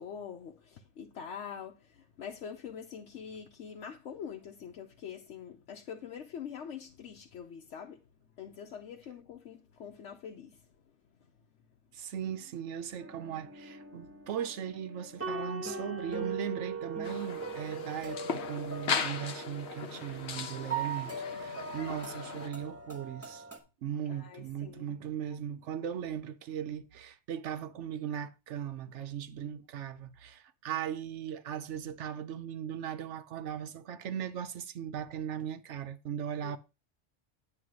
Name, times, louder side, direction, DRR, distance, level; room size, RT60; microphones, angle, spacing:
voice 1, 0.0-8.0 8.4-10.7 24.1-24.9 36.4-36.6, left 7 dB, 90° left, 1.1 m, -44 dB
voice 2, 11.9-23.4 23.8-36.6, right 9 dB, 90° right, 1.0 m, -38 dB
sound 1, 13.0-23.6, right 4 dB, 15° right, 1.2 m, -40 dB
sound 2, 17.0-22.5, left 6 dB, 70° left, 1.1 m, -38 dB
9.4 x 3.3 x 6.1 m
omnidirectional pair, 1.2 m